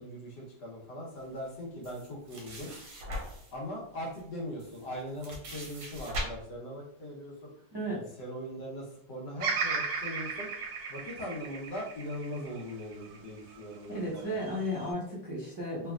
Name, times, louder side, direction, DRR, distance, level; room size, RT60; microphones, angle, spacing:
voice 1, 0.0-2.7 3.5-10.5 10.9-14.3, equal, 65° left, -3 dB, 1.5 m, -40 dB
sound 1, 1.8-3.5 4.2-4.3 4.6-6.2, equal, 55° right, 1.1 m, -40 dB
voice 2, 7.7-8.0 13.9-15.9, equal, 35° right, -8 dB, 0.4 m, -34 dB
Bird vocalization bird call bird song, 9.4-13.6 14.2-14.9, right 5 dB, 75° right, 1.3 m, -35 dB
3.3 x 3.3 x 2.4 m, 0.69 s
omnidirectional pair, 2.1 m